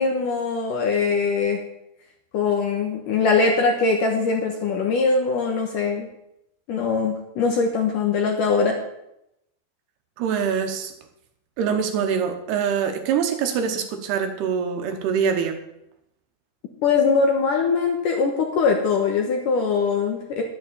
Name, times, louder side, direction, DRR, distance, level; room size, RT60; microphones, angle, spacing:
voice 1, 0.0-1.6 2.3-6.1 6.7-8.8 16.8-20.4, left 4 dB, 65° left, 2 dB, 2.2 m, -22 dB
voice 2, 10.2-10.9 11.6-15.6, right 7 dB, 75° right, 6 dB, 2.9 m, -24 dB
12.0 x 7.9 x 7.0 m, 0.83 s
omnidirectional pair, 5.0 m